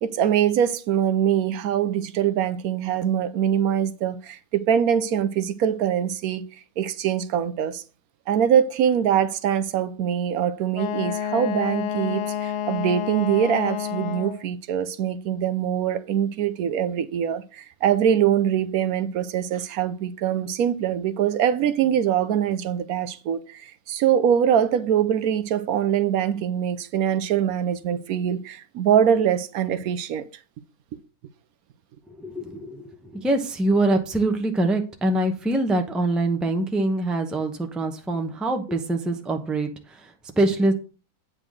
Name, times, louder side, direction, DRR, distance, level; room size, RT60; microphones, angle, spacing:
voice 1, 0.0-6.4 6.8-7.8 8.3-30.3, right 9 dB, 75° right, 1.0 m, -23 dB
Wind instrument woodwind instrument, 10.7-14.5, left 9 dB, 70° left, 0.7 m, -29 dB
voice 2, 32.1-40.7, right 2 dB, ahead, 0.6 m, -24 dB
8.8 x 3.8 x 6.3 m
omnidirectional pair, 1.6 m